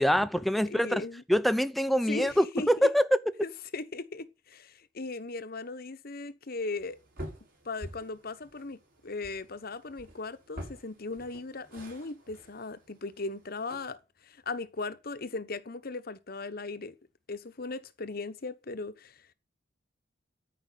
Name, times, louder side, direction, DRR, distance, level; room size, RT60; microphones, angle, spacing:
voice 1, 0.0-1.0 1.3-3.0, equal, ahead, 0.7 m, -25 dB
voice 2, 0.6-1.2 2.1-2.9 3.4-7.0 7.6-16.9 17.3-19.2, left 3 dB, 55° left, 1.1 m, -38 dB
sound 1, 6.8-13.9, equal, 50° right, 7.3 m, -48 dB
13.5 x 5.2 x 8.4 m
head